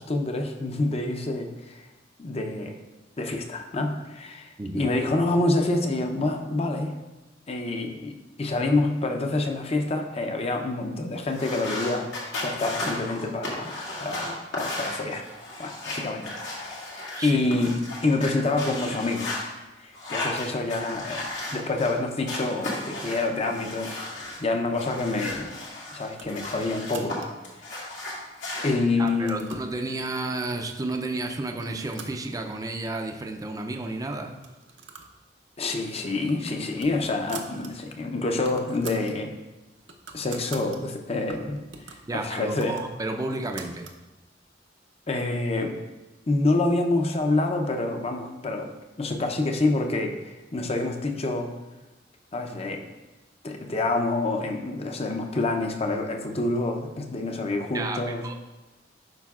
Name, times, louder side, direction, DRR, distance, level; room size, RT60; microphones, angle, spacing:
voice 1, 0.0-1.8 2.2-2.7 3.2-7.0 7.5-12.1 12.4-15.2 15.6-16.7 17.2-17.7 18.0-19.3 19.8-24.0 24.4-25.5 25.9-27.1 28.6-29.6 35.6-39.3 40.1-41.6 41.9-42.8 45.1-45.8 46.3-48.7 49.0-51.5 52.3-52.8 53.4-58.2, left 2 dB, 35° left, 4 dB, 0.7 m, -27 dB
sound 1, 11.3-19.4 19.9-21.9 22.2-24.4 24.7-27.2 27.4-28.7, left 2 dB, 85° left, 2.0 m, -35 dB
sound 2, 26.2-27.5 28.1-28.6 28.9-29.7 30.5-30.6 30.9-31.2 31.5-32.8 33.1-33.2 33.4-33.5 34.3-35.2 35.5-35.7 36.1-37.7 38.0-38.1 38.3-39.2 39.6-40.8 41.3-44.0, right 5 dB, 75° right, 0.7 m, -44 dB
voice 2, 29.0-34.4 42.0-43.9 57.7-58.3, right 2 dB, 20° right, 4 dB, 0.5 m, -32 dB
11.5 x 5.0 x 2.4 m, 1.1 s
head